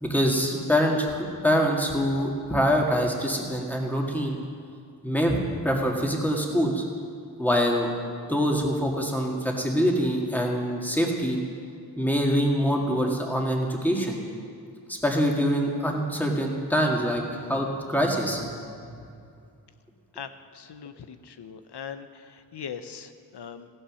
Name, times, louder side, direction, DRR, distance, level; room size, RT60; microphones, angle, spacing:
voice 1, 0.0-4.4 5.0-5.4 5.6-6.8 7.4-7.9 8.3-11.4 12.0-14.2 14.9-18.4 18.9-19.0, equal, 5° left, 0 dB, 1.9 m, -25 dB
voice 2, 20.1-23.7, left 7 dB, 70° left, 10 dB, 0.8 m, -41 dB
15.5 x 9.0 x 6.3 m, 2.4 s
wide cardioid pair, 110°, 41 cm